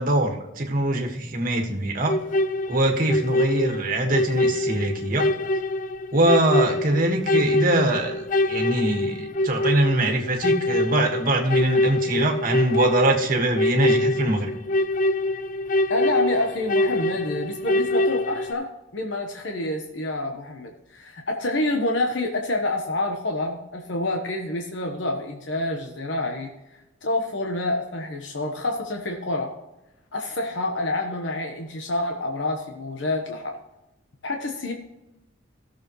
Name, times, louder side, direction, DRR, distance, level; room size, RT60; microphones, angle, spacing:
voice 1, 0.0-2.2 2.7-5.3 6.1-14.5, right 1 dB, 45° right, 2 dB, 1.7 m, -23 dB
sound 1, 2.1-18.5, left 1 dB, 40° left, 0.5 m, -24 dB
voice 2, 15.9-26.5 27.0-29.5 30.1-33.5 34.2-34.7, left 2 dB, 70° left, 3 dB, 1.1 m, -27 dB
16.5 x 7.0 x 3.1 m, 0.96 s
head